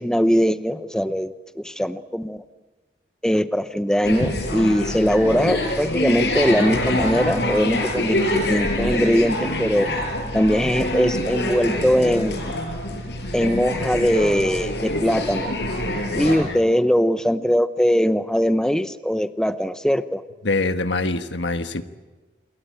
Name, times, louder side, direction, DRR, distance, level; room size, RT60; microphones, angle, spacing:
voice 1, 0.0-2.4 3.2-9.9 10.3-12.5 13.3-15.5 16.1-20.2, equal, 5° left, 12 dB, 0.8 m, -21 dB
sound 1, 4.0-16.4, left 1 dB, 65° left, 5.9 m, -25 dB
voice 2, 16.1-16.6 20.4-21.8, left 2 dB, 80° left, 9 dB, 1.5 m, -25 dB
28.0 x 22.0 x 8.9 m, 1.2 s
head